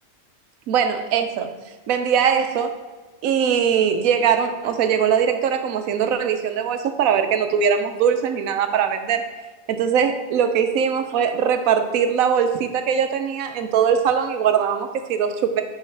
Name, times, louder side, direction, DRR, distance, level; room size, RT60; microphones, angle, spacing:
voice 1, 0.7-1.5 1.9-2.8 3.2-9.2 9.7-15.6, right 7 dB, 80° right, 8 dB, 1.1 m, -21 dB
9.4 x 3.8 x 3.3 m, 1.3 s
omnidirectional pair, 1.5 m